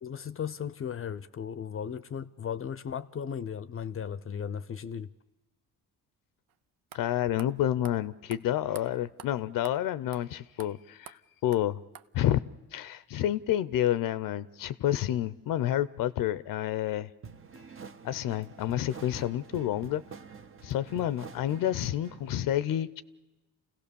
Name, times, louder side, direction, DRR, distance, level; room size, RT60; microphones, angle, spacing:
voice 1, 0.0-5.1, left 7 dB, 40° left, 0.6 m, -36 dB
sound 1, 6.5-6.6 6.9-7.0 7.4-7.5 7.8-8.0 8.3-8.4 8.7-8.8 9.2-9.3 9.6-9.8 10.1-10.2 10.6-10.7 11.1-11.2 11.5-11.6 11.9-12.1, right 10 dB, 85° right, 0.7 m, -46 dB
voice 2, 6.9-11.8 12.1-12.4 12.7-17.1 18.0-20.0 20.6-23.0, left 12 dB, 75° left, 0.6 m, -29 dB
sound 2, 17.2-22.3, right 6 dB, 40° right, 0.9 m, -47 dB
28.0 x 16.5 x 7.0 m
cardioid pair, 80°, 34 cm